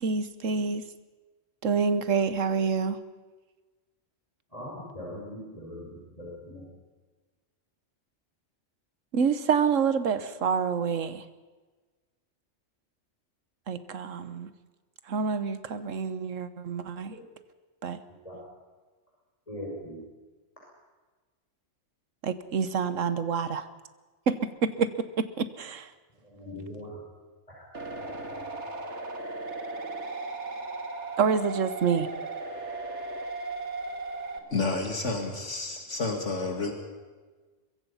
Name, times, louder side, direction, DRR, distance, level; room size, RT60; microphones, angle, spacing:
voice 1, 0.0-0.9 1.6-3.0 9.1-11.2 13.7-14.5 15.1-17.1 17.8-18.0 22.2-23.7 24.3-24.9 25.4-25.9 31.2-32.1, right 6 dB, 75° right, 12 dB, 1.5 m, -27 dB
voice 2, 4.5-6.7 17.1-17.2 18.2-18.3 19.5-20.0 26.2-27.0 27.5-27.6, left 1 dB, 25° left, -5 dB, 6.0 m, -40 dB
sound 1, 27.7-34.4, right 3 dB, 60° right, 2.3 m, -36 dB
voice 3, 34.5-36.7, left 3 dB, 65° left, 3 dB, 2.6 m, -30 dB
23.0 x 23.0 x 5.7 m, 1.3 s
omnidirectional pair, 1.3 m